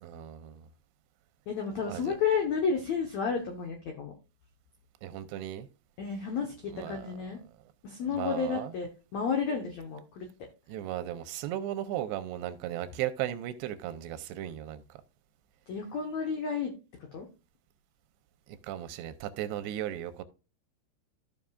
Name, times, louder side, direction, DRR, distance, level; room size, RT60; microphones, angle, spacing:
voice 1, 0.0-0.7 1.9-2.1 5.0-5.7 6.7-7.1 8.1-8.7 10.7-15.0 18.5-20.2, right 12 dB, 85° right, 2.8 m, -36 dB
voice 2, 1.5-4.1 6.0-7.4 7.8-10.3 15.7-16.7 17.1-17.3, left 6 dB, 90° left, 1.5 m, -31 dB
14.5 x 5.4 x 2.3 m
omnidirectional pair, 4.8 m